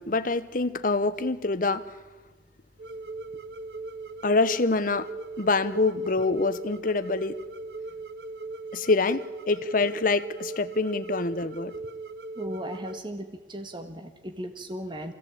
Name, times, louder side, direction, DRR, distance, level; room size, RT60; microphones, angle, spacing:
voice 1, 0.0-1.9 4.2-5.1 5.4-7.4 8.7-11.8, left 3 dB, 50° left, 12 dB, 1.0 m, -26 dB
sound 1, 2.8-13.0, right 3 dB, 60° right, 0.7 m, -39 dB
voice 2, 12.3-15.1, equal, 25° right, 7 dB, 1.5 m, -37 dB
24.5 x 16.5 x 8.5 m, 1.3 s
head